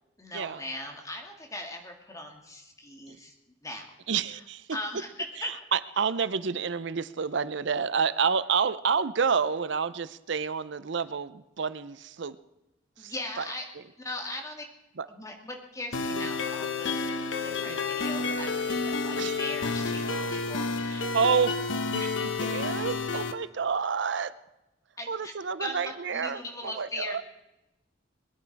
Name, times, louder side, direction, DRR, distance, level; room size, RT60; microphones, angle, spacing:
voice 1, 0.2-3.3 3.6-3.8 4.7-5.1 5.4-5.5 13.0-13.7 14.0-14.6 15.1-17.0 17.4-21.1 22.0-22.2 25.0-25.3 25.6-27.2, left 1 dB, 15° left, 2 dB, 2.2 m, -39 dB
voice 2, 4.1-4.7 5.4-12.4 13.0-13.4 15.0-15.1 16.1-16.2 17.6-17.9 19.2-19.4 19.8-20.3 20.9-21.6 21.9-22.0 22.4-24.3 25.1-27.2, right 6 dB, 70° right, 15 dB, 0.6 m, -29 dB
sound 1, 15.9-23.3, left 4 dB, 85° left, 1.2 m, -30 dB
21.5 x 11.0 x 4.7 m, 0.93 s
head